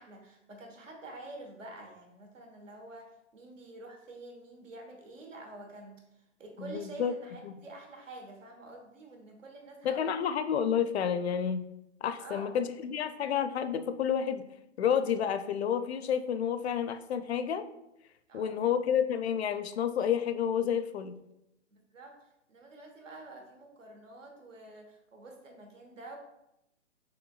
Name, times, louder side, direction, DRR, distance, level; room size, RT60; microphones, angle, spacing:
voice 1, 0.0-6.0 6.4-10.1 12.2-12.6 18.3-18.7 21.7-26.2, right 2 dB, 90° right, 2 dB, 1.4 m, -48 dB
voice 2, 6.6-7.1 7.4-7.5 9.8-11.6 12.0-14.4 14.8-17.7 18.3-21.1, left 8 dB, 60° left, 11 dB, 0.5 m, -30 dB
6.0 x 3.3 x 2.4 m, 0.86 s
hypercardioid pair, 155°, 37 cm